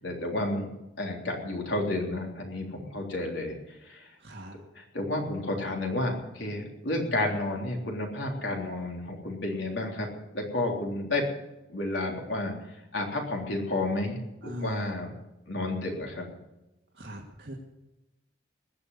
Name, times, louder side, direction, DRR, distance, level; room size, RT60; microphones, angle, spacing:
voice 1, 0.0-0.7 1.0-3.6 3.8-4.1 4.8-10.1 10.3-11.3 11.7-12.5 12.9-14.2 14.4-15.1 15.5-16.3, left 2 dB, 80° left, 0 dB, 3.6 m, -31 dB
voice 2, 4.2-4.5 6.9-7.2 14.4-14.9 16.9-17.5, equal, 65° right, -3 dB, 2.1 m, -40 dB
20.5 x 7.0 x 9.6 m, 0.97 s
head